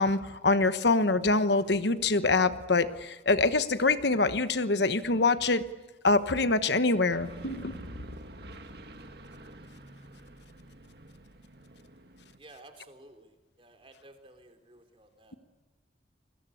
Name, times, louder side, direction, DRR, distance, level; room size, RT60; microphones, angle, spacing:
voice 1, 0.0-5.6 6.0-7.8, left 3 dB, 70° left, 12 dB, 1.2 m, -25 dB
sound 1, 7.1-12.4, right 1 dB, 60° right, 1.9 m, -48 dB
voice 2, 12.4-15.4, right 2 dB, 30° right, 7 dB, 3.3 m, -54 dB
29.5 x 21.5 x 8.6 m, 1.2 s
head